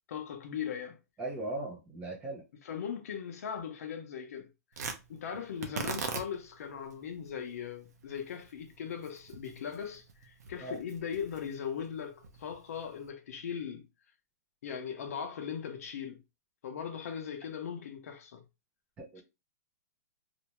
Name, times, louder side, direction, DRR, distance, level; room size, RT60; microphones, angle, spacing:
voice 1, 0.1-1.0 2.6-4.5 5.1-13.8 14.6-16.2 16.6-18.4 19.2-19.3, left 7 dB, 60° left, 0.7 m, -39 dB
voice 2, 1.2-2.4 5.3-5.4 10.6-10.8 19.0-19.2, right 2 dB, 15° right, 0.6 m, -38 dB
Tearing, 4.7-13.1, right 5 dB, 75° right, 0.7 m, -43 dB
2.6 x 2.2 x 2.9 m
hypercardioid pair, 170°, 9 cm